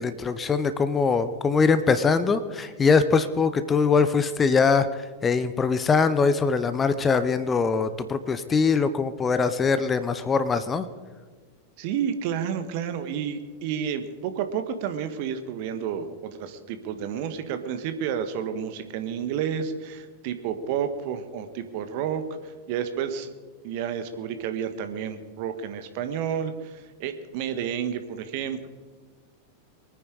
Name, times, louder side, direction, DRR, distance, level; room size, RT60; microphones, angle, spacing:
voice 1, 0.0-10.9, left 5 dB, 20° left, 12 dB, 0.9 m, -22 dB
voice 2, 11.8-23.3 23.6-28.7, right 8 dB, 45° right, 9 dB, 1.4 m, -30 dB
24.0 x 9.3 x 4.9 m, 1.4 s
figure-of-eight pair, 90°, 0 cm